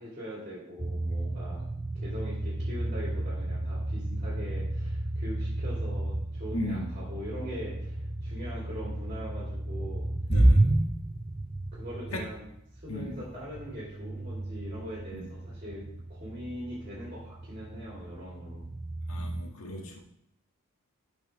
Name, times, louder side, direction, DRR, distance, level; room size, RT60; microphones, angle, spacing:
voice 1, 0.0-1.6 1.9-10.1 11.7-12.4 12.7-18.7, equal, 35° right, -6 dB, 3.4 m, -42 dB
sound 1, 0.8-19.4, right 1 dB, 15° right, 0.4 m, -31 dB
voice 2, 6.5-6.9 10.3-10.8 12.1-12.2 12.9-13.2 15.1-15.3 19.1-20.0, left 1 dB, 70° left, 0 dB, 1.8 m, -36 dB
14.5 x 5.3 x 3.5 m, 0.79 s
head